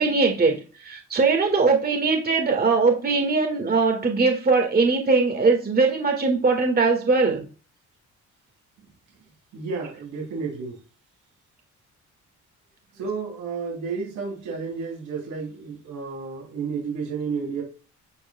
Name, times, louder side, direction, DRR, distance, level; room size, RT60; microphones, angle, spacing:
voice 1, 0.0-7.5, right 4 dB, 30° right, 1.9 m, -21 dB
voice 2, 9.5-10.8 12.9-17.6, right 5 dB, 85° right, 3.3 m, -31 dB
9.6 x 4.6 x 2.3 m
cardioid pair, 90°, 30 cm